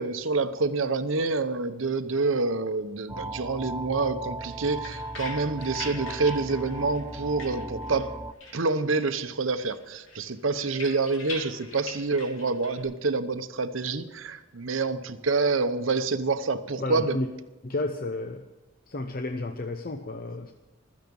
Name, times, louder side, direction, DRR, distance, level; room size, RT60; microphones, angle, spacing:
voice 1, 0.0-8.1 8.5-17.2, right 3 dB, 80° right, 0.9 m, -27 dB
sound 1, 3.1-8.3, right 1 dB, 10° right, 0.4 m, -37 dB
sound 2, 4.4-8.1 8.4-9.3 9.6-12.8, left 3 dB, 85° left, 3.4 m, -43 dB
voice 2, 16.8-17.3 17.6-18.5 18.9-20.5, left 2 dB, 50° left, 0.8 m, -32 dB
15.5 x 13.5 x 5.4 m
head